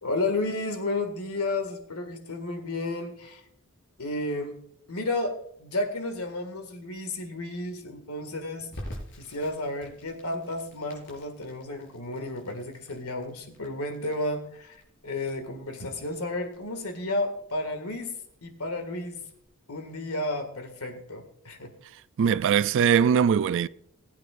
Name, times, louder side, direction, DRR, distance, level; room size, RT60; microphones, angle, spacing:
voice 1, 0.0-3.4 4.0-4.6 4.9-8.7 9.2-19.2 19.7-21.7 22.5-22.6, left 2 dB, 80° left, 2.0 m, -32 dB
Crackle, 8.7-19.5, equal, 60° left, 4.6 m, -47 dB
voice 2, 22.2-23.7, right 7 dB, 60° right, 0.3 m, -21 dB
20.0 x 8.6 x 2.5 m
head